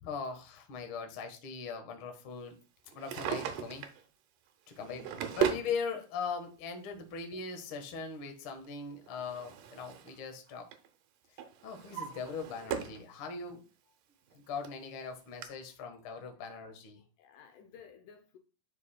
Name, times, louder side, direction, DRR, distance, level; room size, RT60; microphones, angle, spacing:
voice 1, 0.0-2.6 2.9-3.9 4.7-10.7 11.3-13.6 14.3-17.0, left 5 dB, 55° left, 1.4 m, -40 dB
Drawer open or close, 2.9-4.0 4.7-5.7 6.8-6.9 8.6-10.2 10.5-10.9 11.4-13.0 13.5-13.6 14.3-14.4 14.6-14.7 15.4-15.5, right 9 dB, 75° right, 2.2 m, -36 dB
voice 2, 4.8-5.3 17.2-18.4, left 6 dB, 75° left, 2.1 m, -55 dB
11.5 x 4.7 x 2.2 m
omnidirectional pair, 4.1 m